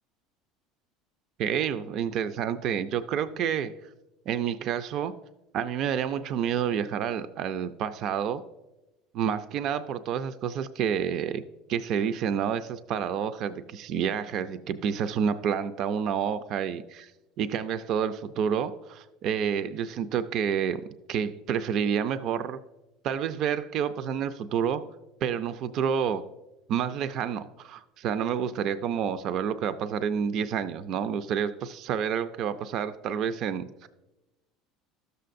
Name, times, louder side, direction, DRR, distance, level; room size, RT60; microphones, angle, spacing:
voice 1, 1.4-3.7 4.3-5.1 5.5-8.4 9.1-11.4 11.7-17.1 17.4-22.6 23.0-24.8 25.2-26.2 26.7-33.9, right 8 dB, 55° right, 12 dB, 0.4 m, -29 dB
13.5 x 6.7 x 2.5 m, 1.0 s
supercardioid pair, 120°, 0 cm